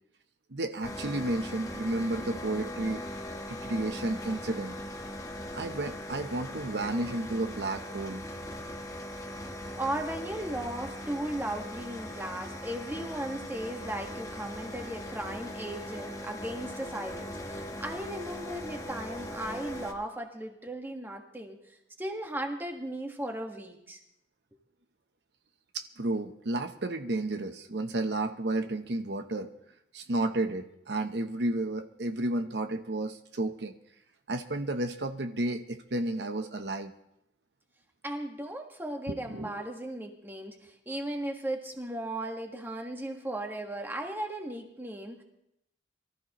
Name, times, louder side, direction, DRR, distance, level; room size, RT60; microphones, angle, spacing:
voice 1, 0.5-3.0 3.5-4.8 5.5-8.2 25.7-29.5 29.9-33.7 34.3-36.9 39.1-39.6, right 2 dB, 65° right, 7 dB, 0.8 m, -32 dB
sound 1, 0.8-19.9, left 1 dB, 20° left, 1.2 m, -40 dB
voice 2, 9.8-21.6 22.0-24.0 38.0-45.2, right 1 dB, 10° right, 3 dB, 1.5 m, -36 dB
23.5 x 14.0 x 3.0 m, 0.80 s
head